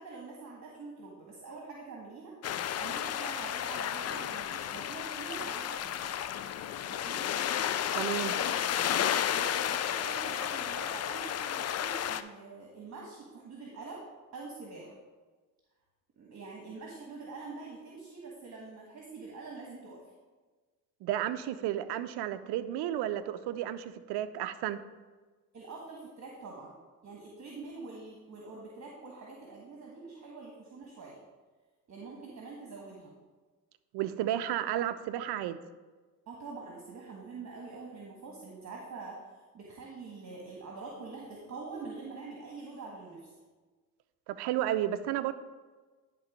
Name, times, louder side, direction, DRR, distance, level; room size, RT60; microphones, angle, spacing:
voice 1, 0.0-2.3 2.6-6.1 6.9-7.3 8.2-8.8 9.1-14.0 14.3-15.0 16.2-20.1 25.5-31.2 31.9-33.2 36.3-43.3, right 3 dB, 45° right, -2 dB, 1.5 m, -45 dB
sound 1, 2.4-12.2, left 10 dB, 40° left, 0.4 m, -32 dB
voice 2, 7.9-8.3 21.0-24.8 33.9-35.6 44.3-45.3, right 12 dB, 75° right, 12 dB, 0.6 m, -32 dB
10.5 x 3.8 x 5.0 m, 1.3 s
supercardioid pair, 75°, 41 cm